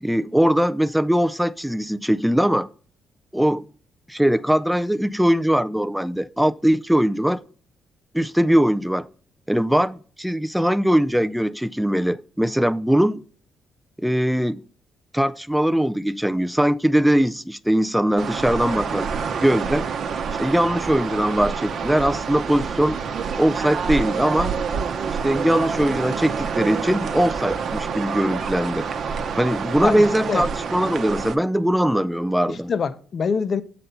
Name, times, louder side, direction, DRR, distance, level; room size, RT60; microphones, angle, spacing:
voice 1, 0.0-2.7 3.3-3.6 4.1-7.4 8.1-9.1 9.5-13.2 14.0-14.6 15.1-19.1 19.4-19.9 20.4-23.0 23.4-24.5 25.2-28.9 29.3-32.7, equal, 5° right, 0.3 m, -21 dB
sound 1, 18.2-31.4, right 6 dB, 60° right, 0.8 m, -27 dB
voice 2, 29.8-30.5 32.5-33.6, left 5 dB, 50° left, 0.7 m, -25 dB
7.7 x 4.2 x 6.6 m
cardioid pair, 90°, 0 cm